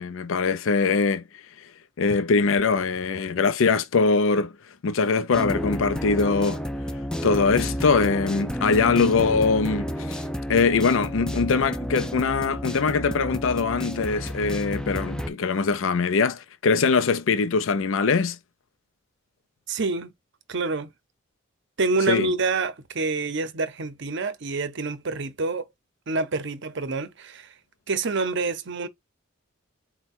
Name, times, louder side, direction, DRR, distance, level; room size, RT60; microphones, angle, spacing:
voice 1, 0.0-1.7 2.0-6.6 7.2-10.2 10.5-18.4 22.1-22.3, left 4 dB, 65° left, 0.5 m, -22 dB
sound 1, 5.3-15.3, equal, 5° left, 0.4 m, -31 dB
voice 2, 19.7-20.1 20.5-20.9 21.8-25.6 26.1-27.5 27.9-28.9, right 3 dB, 60° right, 0.7 m, -27 dB
4.5 x 2.2 x 4.2 m
head